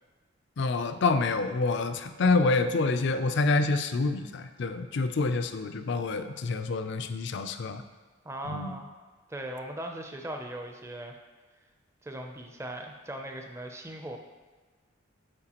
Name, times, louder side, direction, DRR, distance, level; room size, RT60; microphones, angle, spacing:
voice 1, 0.6-7.8 8.5-8.8, left 3 dB, 60° left, 9 dB, 0.4 m, -27 dB
voice 2, 8.2-8.9 9.3-11.1 12.0-14.2, right 1 dB, 15° right, 3 dB, 0.4 m, -39 dB
8.8 x 4.4 x 2.9 m, 1.4 s
head